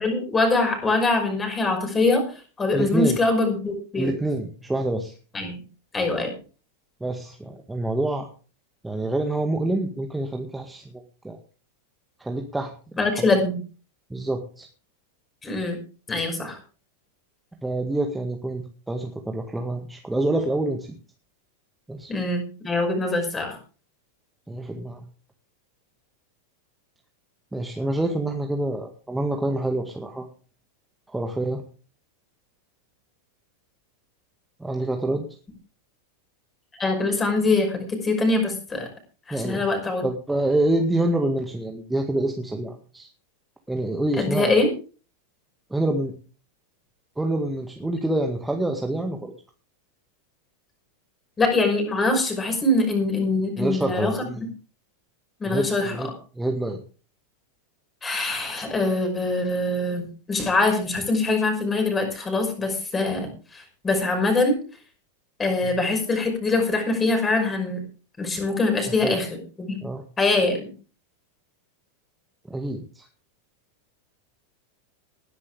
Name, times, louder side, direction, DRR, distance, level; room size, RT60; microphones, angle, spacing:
voice 1, 0.0-2.3 2.6-4.1 5.3-5.6 5.9-6.3 13.0-13.6 15.4-15.8 16.1-16.6 22.1-23.6 36.8-38.9 39.3-40.0 44.2-44.7 51.4-54.2 55.4-56.1 58.0-64.6 65.4-67.8 68.2-69.3 69.6-69.8 70.2-70.7, left 2 dB, 15° left, 4 dB, 5.6 m, -23 dB
voice 2, 2.7-3.2 4.0-5.1 7.0-8.3 8.8-10.8 11.2-11.4 12.2-12.7 13.2-13.3 14.1-14.7 17.6-20.9 21.9-22.1 24.5-25.0 27.5-30.3 31.1-31.6 34.6-35.2 39.3-39.6 40.0-43.1 43.7-44.5 45.7-46.1 47.2-49.3 53.6-54.5 55.4-56.1 56.4-56.8 69.0-69.2 69.8-70.0 72.5-73.1, right 1 dB, 5° right, 3 dB, 1.9 m, -26 dB
19.5 x 10.5 x 3.5 m, 0.37 s
figure-of-eight pair, 90°, 0 cm